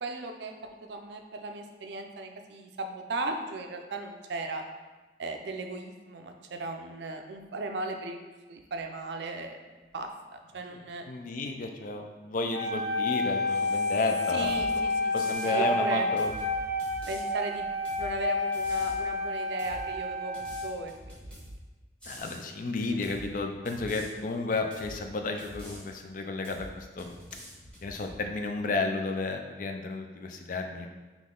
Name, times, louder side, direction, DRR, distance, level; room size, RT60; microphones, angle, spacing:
voice 1, 0.0-4.6 5.2-8.2 8.5-9.6 9.9-11.0 14.3-15.1 15.5-16.1 17.1-17.7 18.0-21.5, right 2 dB, 70° right, 5 dB, 0.4 m, -37 dB
voice 2, 11.1-14.8 15.1-16.3 22.0-27.1 27.8-30.9, left 3 dB, 45° left, 4 dB, 0.4 m, -32 dB
Wind instrument woodwind instrument, 12.5-20.8, left 2 dB, 65° left, 1.3 m, -30 dB
sound 1, 14.5-14.7 15.1-15.5 16.2-17.2 17.9-18.1 18.5-19.0 19.6-19.9 20.3-21.6 22.0-22.4 23.0-23.3 23.7-24.1 24.7-25.0 25.4-25.8 26.4-26.7 27.0-28.2, equal, 5° left, 1.2 m, -46 dB
3.8 x 3.0 x 3.7 m, 1.2 s
head